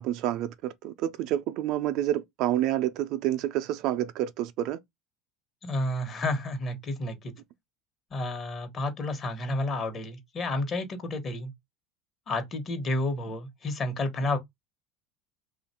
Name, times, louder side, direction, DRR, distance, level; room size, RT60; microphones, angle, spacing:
voice 1, 0.0-4.8, right 12 dB, 65° right, 0.4 m, -28 dB
voice 2, 5.6-7.3 8.1-11.5 12.3-14.4, left 2 dB, 40° left, 1.1 m, -31 dB
2.8 x 2.4 x 4.2 m
supercardioid pair, 95°, 0 cm